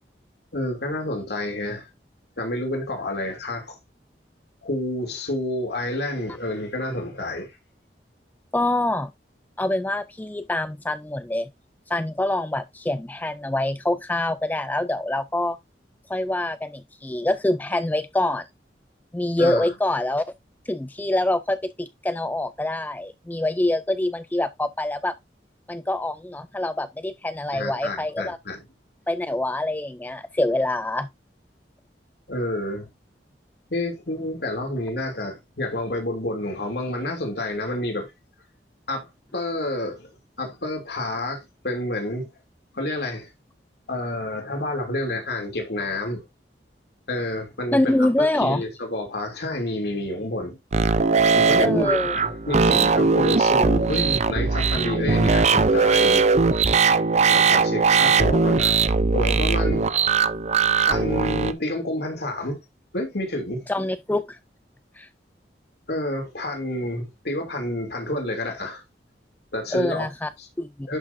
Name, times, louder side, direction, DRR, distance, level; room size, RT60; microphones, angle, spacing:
voice 1, 0.5-1.9 2.4-3.8 4.6-7.5 19.4-19.7 27.5-28.6 32.3-32.9 33.7-38.1 38.9-40.1 40.4-42.3 42.7-43.3 43.9-46.2 47.1-50.6 51.3-56.3 57.3-58.8 59.1-59.9 60.8-62.6 62.9-63.7 65.9-68.8 69.5-70.1 70.4-70.5 70.9-71.0, left 1 dB, 65° left, 2.9 m, -29 dB
voice 2, 8.5-9.1 9.6-11.5 11.9-15.6 16.1-18.5 19.1-20.2 20.7-25.1 25.7-28.4 29.1-31.1 47.7-48.6 51.6-52.2 63.7-64.4 65.0-65.1 69.7-70.3 70.6-70.7, left 1 dB, 10° left, 0.4 m, -25 dB
sound 1, 50.7-61.5, right 4 dB, 40° right, 0.6 m, -19 dB
11.0 x 6.3 x 2.6 m
head